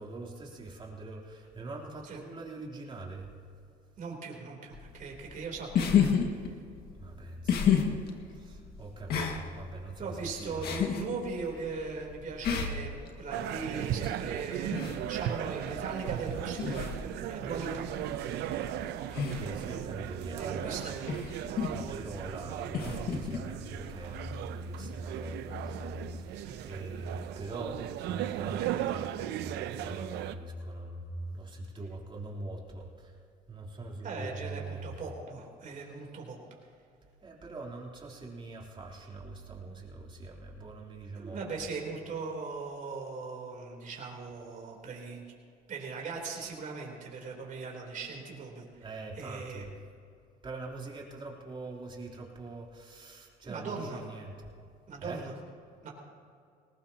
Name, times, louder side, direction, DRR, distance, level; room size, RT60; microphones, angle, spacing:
voice 1, 0.0-3.3 7.0-8.0 8.3-10.7 19.2-20.8 21.7-27.8 28.1-29.1 29.4-33.2 33.5-34.9 37.2-41.4 48.8-49.7 50.4-54.5 55.0-55.2, right 2 dB, 30° right, -3 dB, 3.5 m, -42 dB
voice 2, 4.0-6.1 10.0-16.9 17.3-17.9 20.4-21.2 26.3-26.6 34.0-36.4 41.2-45.2 45.7-48.9 49.2-49.7 53.4-54.0 54.9-55.3 55.8-55.9, right 4 dB, 50° right, 0 dB, 3.6 m, -39 dB
sound 1, 4.7-24.4, left 7 dB, 70° left, 1.9 m, -33 dB
sound 2, 13.3-30.3, right 12 dB, 85° right, 0.7 m, -37 dB
sound 3, 14.6-28.7, equal, 15° left, 2.3 m, -51 dB
20.5 x 19.0 x 2.9 m, 2.4 s
cardioid pair, 110°, 17 cm